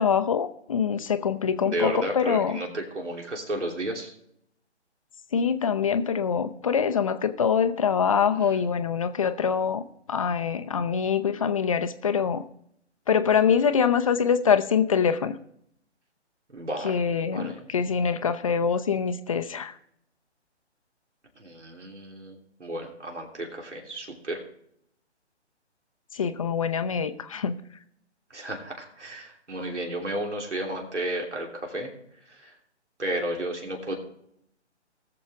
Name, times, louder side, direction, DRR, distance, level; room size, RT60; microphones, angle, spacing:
voice 1, 0.0-2.6 5.3-12.4 13.1-15.4 16.8-19.7 26.1-27.6, left 7 dB, 30° left, 10 dB, 0.6 m, -24 dB
voice 2, 1.6-4.1 8.3-8.6 16.5-17.0 17.3-17.7 21.4-24.4 28.3-31.9 32.3-32.5 33.0-33.9, right 1 dB, 80° right, 1 dB, 3.2 m, -33 dB
19.0 x 7.2 x 3.5 m, 0.71 s
figure-of-eight pair, 140°, 35 cm